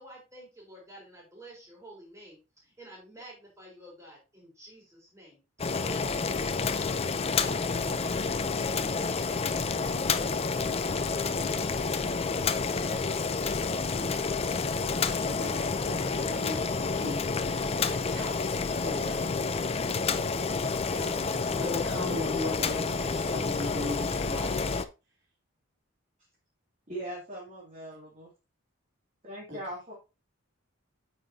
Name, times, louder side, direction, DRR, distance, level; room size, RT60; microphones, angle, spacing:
voice 1, 0.0-5.4, right 1 dB, 15° right, -4 dB, 3.7 m, -51 dB
Boiling, 5.6-24.8, left 4 dB, 30° left, 0.5 m, -29 dB
voice 2, 15.1-19.4 20.9-21.1 21.5-24.8 29.5-29.6, left 2 dB, 55° right, -2 dB, 2.9 m, -38 dB
voice 3, 26.9-28.3 29.2-29.9, right 1 dB, 35° right, -5 dB, 2.4 m, -40 dB
8.6 x 5.9 x 2.7 m, 0.28 s
head